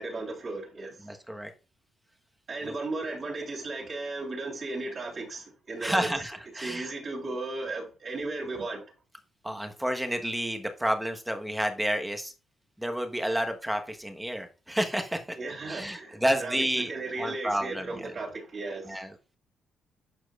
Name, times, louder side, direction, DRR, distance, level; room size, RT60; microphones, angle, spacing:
voice 1, 0.0-1.1 2.5-6.1 6.5-8.9 15.4-19.0, right 2 dB, 45° right, 3.1 m, -35 dB
voice 2, 1.0-1.5 2.6-2.7 5.8-6.9 9.4-12.3 12.8-15.4 15.7-16.9 17.2-18.1 18.9-19.1, equal, 5° right, 1.1 m, -30 dB
11.5 x 4.6 x 2.4 m
cardioid pair, 90°, 0 cm